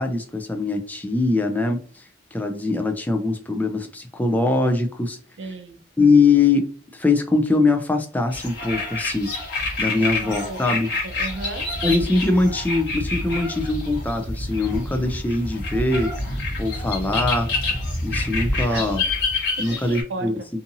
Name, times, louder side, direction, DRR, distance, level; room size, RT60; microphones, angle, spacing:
voice 1, 0.0-2.0 2.3-5.2 6.0-6.7 6.9-9.3 9.8-10.9 11.8-17.5 18.0-19.0 19.6-20.3, left 3 dB, 10° left, 0.3 m, -22 dB
voice 2, 5.4-5.8 10.0-10.6 11.0-11.7 18.7-18.9 19.6-20.5, right 3 dB, 90° right, 0.5 m, -34 dB
sound 1, 8.3-20.0, left 2 dB, 75° left, 1.0 m, -27 dB
2.7 x 2.5 x 2.6 m
head